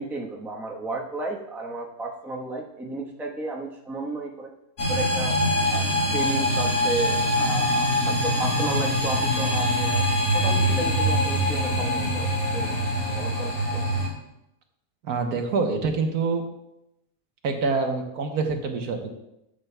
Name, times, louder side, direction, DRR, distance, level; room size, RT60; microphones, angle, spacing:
voice 1, 0.0-4.5 4.9-5.4 5.7-10.1 10.3-12.7 13.1-13.9, right 2 dB, ahead, -1 dB, 0.8 m, -33 dB
sound 1, 4.8-14.1, equal, 55° left, 2.4 m, -23 dB
voice 2, 15.0-16.4 17.4-19.1, right 4 dB, 70° right, 4 dB, 1.4 m, -26 dB
13.0 x 7.6 x 2.2 m, 0.87 s
omnidirectional pair, 1.7 m